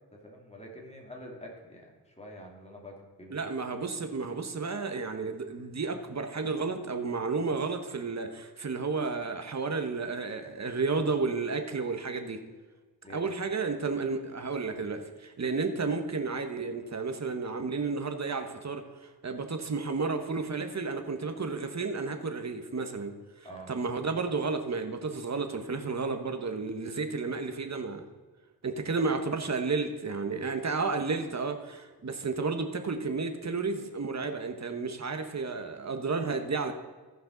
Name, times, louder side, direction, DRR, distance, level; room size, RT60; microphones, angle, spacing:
voice 1, 0.1-3.4 13.0-13.3 23.4-23.7, equal, 15° left, -1 dB, 2.5 m, -46 dB
voice 2, 3.3-12.4 13.1-23.2 23.7-28.0 28.6-36.7, right 4 dB, 40° right, 7 dB, 1.1 m, -32 dB
15.0 x 5.4 x 3.9 m, 1.3 s
cardioid pair, 65°, 40 cm